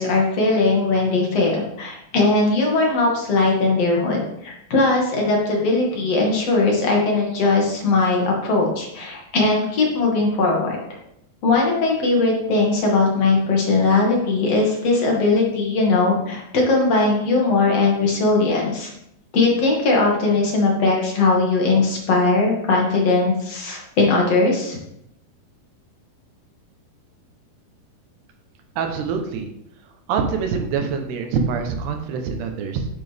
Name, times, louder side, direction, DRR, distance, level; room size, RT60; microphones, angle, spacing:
voice 1, 0.0-10.8 11.4-18.9 19.3-24.8, left 3 dB, 45° left, -1 dB, 2.8 m, -19 dB
voice 2, 28.8-29.5 29.8-32.9, right 5 dB, 80° right, 4 dB, 3.0 m, -25 dB
10.5 x 8.3 x 3.5 m, 0.79 s
omnidirectional pair, 4.8 m